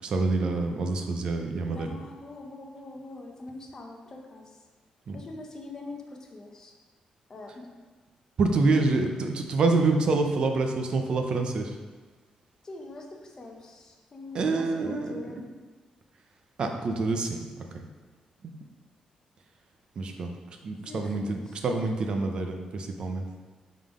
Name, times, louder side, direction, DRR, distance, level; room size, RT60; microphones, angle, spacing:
voice 1, 0.0-1.9 5.1-5.2 8.4-11.7 14.3-15.3 16.6-17.7 18.4-18.5 20.0-20.3 20.6-23.2, right 3 dB, 45° right, 4 dB, 0.5 m, -27 dB
voice 2, 1.7-4.6 5.1-6.7 7.3-7.7 8.7-9.0 12.6-15.4 20.0-20.3 20.7-22.1, left 2 dB, 25° left, 1 dB, 0.7 m, -44 dB
5.4 x 3.8 x 4.9 m, 1.4 s
wide cardioid pair, 180°, 2 cm